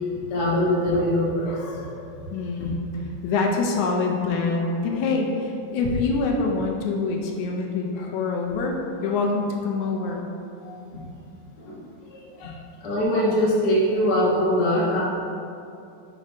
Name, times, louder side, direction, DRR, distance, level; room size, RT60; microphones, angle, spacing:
voice 1, 0.1-1.5 10.6-11.0 11.6-11.8 12.1-12.5 12.8-15.0, equal, 45° left, -6 dB, 1.5 m, -23 dB
voice 2, 1.5-2.8 3.2-10.2 12.4-12.6, left 3 dB, 85° left, 0 dB, 2.1 m, -26 dB
5.4 x 4.4 x 5.1 m, 2.5 s
omnidirectional pair, 3.3 m